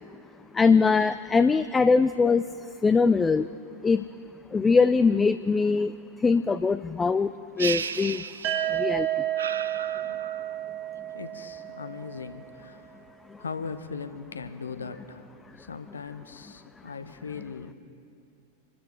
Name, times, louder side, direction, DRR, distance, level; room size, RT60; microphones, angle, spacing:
voice 1, 0.6-2.4 2.8-3.5 3.8-4.0 4.5-5.9 6.2-7.3 7.6-8.2 8.7-9.1, left 4 dB, 15° left, 12 dB, 0.3 m, -21 dB
sound 1, 7.6-8.9 9.4-10.6, right 6 dB, 70° right, 0.4 m, -34 dB
sound 2, 8.4-12.3, right 13 dB, 40° right, 1.4 m, -31 dB
voice 2, 11.1-12.9 13.4-17.7, left 5 dB, 70° left, 10 dB, 0.8 m, -39 dB
26.5 x 13.5 x 3.2 m, 2.6 s
figure-of-eight pair, 90°, 0 cm